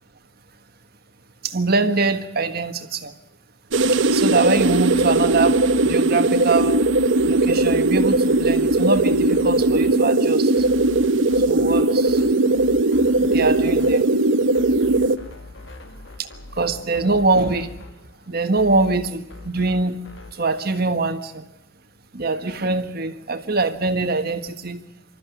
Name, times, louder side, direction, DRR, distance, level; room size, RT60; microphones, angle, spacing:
voice 1, 1.4-3.1 3.9-6.8 7.3-10.7 11.5-12.2 13.2-14.0 16.2-17.7 18.3-20.0 20.4-21.4 22.1-24.8, right 3 dB, 55° right, 8 dB, 1.6 m, -23 dB
sound 1, 3.7-15.2, right 2 dB, 75° right, 1.1 m, -18 dB
sound 2, 4.5-20.5, left 2 dB, 65° left, 2.1 m, -42 dB
26.5 x 13.5 x 8.4 m, 0.88 s
head